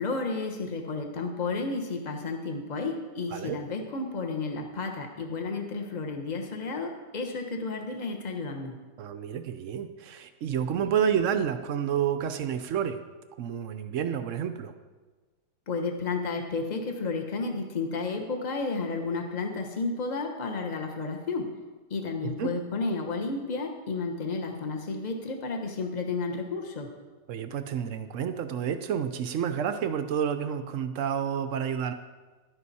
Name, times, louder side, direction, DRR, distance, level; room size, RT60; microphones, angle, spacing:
voice 1, 0.0-8.7 15.7-21.5 21.9-26.9, left 3 dB, 30° left, 3 dB, 1.1 m, -32 dB
voice 2, 9.0-13.0 13.4-14.7 22.2-22.5 27.3-31.9, right 8 dB, 65° right, 9 dB, 0.8 m, -29 dB
11.5 x 9.8 x 4.2 m, 1.3 s
omnidirectional pair, 1.9 m